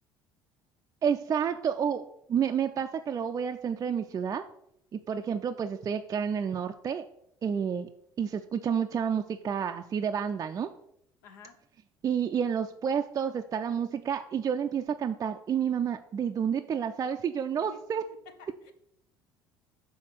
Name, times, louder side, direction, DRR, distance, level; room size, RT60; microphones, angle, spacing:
voice 1, 1.0-4.4 4.9-7.0 7.4-7.9 8.2-10.7 12.0-18.0, right 7 dB, 30° right, 6 dB, 0.4 m, -30 dB
voice 2, 11.2-11.6 17.6-18.7, left 5 dB, 70° left, 8 dB, 0.8 m, -52 dB
5.7 x 3.8 x 6.0 m, 0.75 s
figure-of-eight pair, 60°, 11 cm